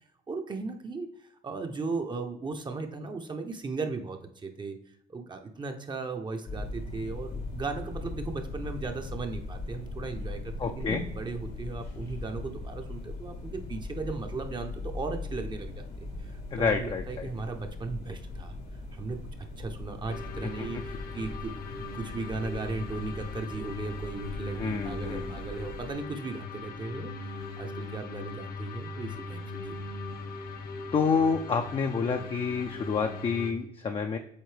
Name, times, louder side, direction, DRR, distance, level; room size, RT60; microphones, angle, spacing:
voice 1, 0.3-4.8 5.1-18.5 18.9-19.2 19.6-29.8, right 4 dB, 25° right, 4 dB, 0.7 m, -37 dB
sound 1, 6.5-25.9, left 2 dB, 90° left, 2.3 m, -39 dB
voice 2, 10.6-11.0 16.5-17.3 20.6-20.7 24.6-25.4 30.9-34.2, left 5 dB, 30° left, 5 dB, 0.5 m, -28 dB
sound 2, 20.1-33.5, left 3 dB, 65° left, 0.8 m, -39 dB
8.0 x 3.7 x 3.3 m, 0.74 s
cardioid pair, 110°, 17 cm